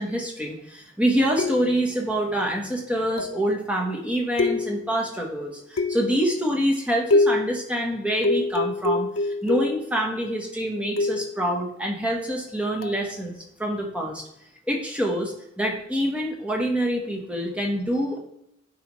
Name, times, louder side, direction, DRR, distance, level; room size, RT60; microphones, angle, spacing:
voice 1, 0.0-13.3 13.6-14.2 14.7-18.2, equal, 5° right, 0 dB, 1.1 m, -26 dB
sound 1, 1.4-1.9 3.2-3.5 4.4-5.0 5.8-6.3 7.1-7.6 8.2-9.9 11.0-11.4 12.8-13.1, left 2 dB, 90° left, 0.5 m, -25 dB
9.2 x 4.8 x 3.1 m, 0.77 s
head